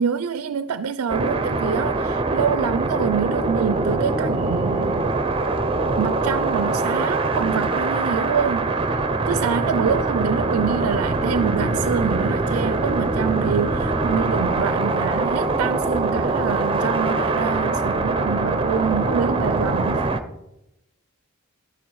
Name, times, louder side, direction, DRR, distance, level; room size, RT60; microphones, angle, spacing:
voice 1, 0.0-5.1 6.0-8.8 9.3-20.1, right 7 dB, 80° right, 0.4 m, -26 dB
sound 1, 1.1-20.2, right 3 dB, 25° right, 0.7 m, -23 dB
11.0 x 9.3 x 4.6 m
head